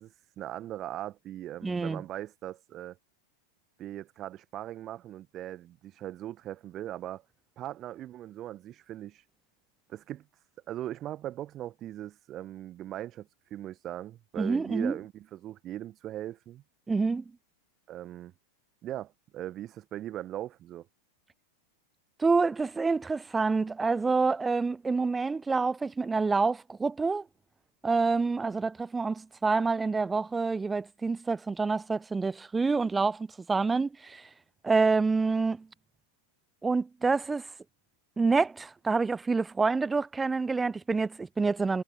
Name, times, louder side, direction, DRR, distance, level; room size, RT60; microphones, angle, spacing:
voice 1, 0.0-3.0 3.8-7.2 7.6-9.2 9.9-10.3 10.7-16.6 17.9-18.3 18.8-20.9, right 13 dB, 30° right, 1.2 m, -39 dB
voice 2, 1.6-2.0 14.4-15.0 16.9-17.2 22.2-27.3 27.8-34.3 34.6-35.7 36.6-37.5 38.2-41.8, right 4 dB, 10° right, 0.3 m, -27 dB
figure-of-eight pair, 90°, 0 cm